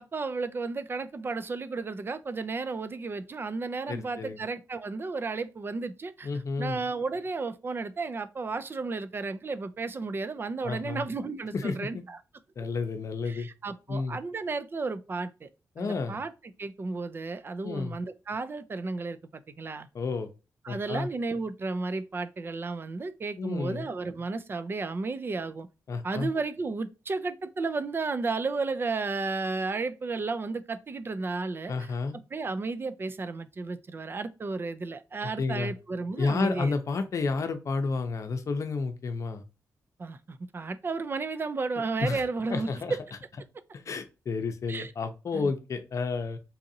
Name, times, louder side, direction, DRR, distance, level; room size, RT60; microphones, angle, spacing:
voice 1, 0.0-6.3 6.6-12.2 13.3-15.5 15.8-16.3 16.6-19.9 20.6-25.7 26.0-31.9 32.3-36.7 40.0-43.0 44.7-44.9 45.3-45.5, right 3 dB, 35° right, 0.4 m, -33 dB
voice 2, 3.9-4.4 6.2-6.8 10.6-11.0 11.5-12.0 12.6-13.5 13.9-14.2 15.8-16.2 17.6-18.0 19.9-20.3 20.7-21.1 23.4-23.9 25.9-26.3 31.7-32.2 35.2-35.7 36.2-39.4 42.0-42.2 42.5-42.9 43.9-46.4, left 4 dB, 55° left, 0.7 m, -31 dB
4.0 x 2.5 x 2.7 m
cardioid pair, 95°, 6 cm